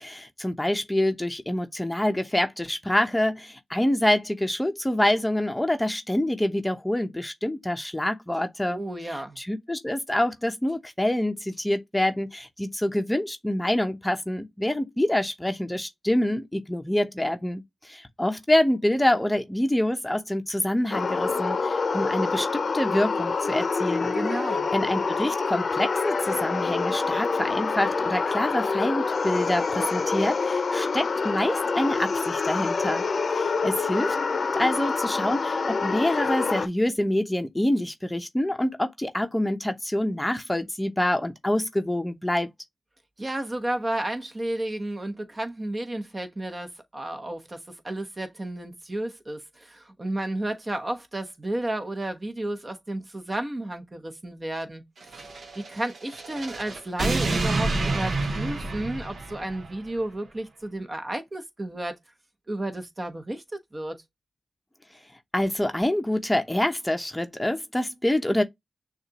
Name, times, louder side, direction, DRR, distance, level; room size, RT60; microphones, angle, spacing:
voice 1, 0.0-8.8 9.1-24.2 24.7-33.0 33.3-34.2 34.5-42.5 65.3-68.4, left 1 dB, 10° left, 0.8 m, -26 dB
voice 2, 8.7-9.4 24.1-24.7 43.2-54.8 55.5-61.9 62.5-64.0, right 1 dB, 30° right, 1.1 m, -32 dB
sound 1, 20.9-36.7, left 4 dB, 60° left, 0.7 m, -26 dB
sound 2, 55.0-59.8, right 2 dB, 65° right, 1.1 m, -29 dB
6.4 x 2.4 x 2.9 m
cardioid pair, 45°, 0 cm